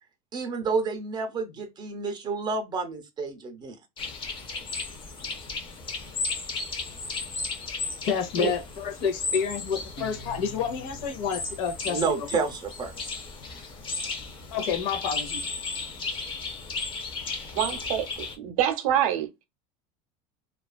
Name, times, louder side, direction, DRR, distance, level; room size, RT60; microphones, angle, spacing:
voice 1, 0.3-3.8 11.9-12.9, right 4 dB, 25° right, 0.6 m, -30 dB
sound 1, 4.0-18.4, left 3 dB, 25° left, 0.5 m, -35 dB
voice 2, 8.0-12.1 14.5-15.4, left 7 dB, 70° left, 0.7 m, -29 dB
Guitar, 10.0-13.2, left 2 dB, 90° left, 1.4 m, -47 dB
voice 3, 17.5-18.1 18.4-19.4, right 10 dB, 85° right, 0.6 m, -26 dB
2.4 x 2.3 x 2.3 m
cardioid pair, 145°, 18 cm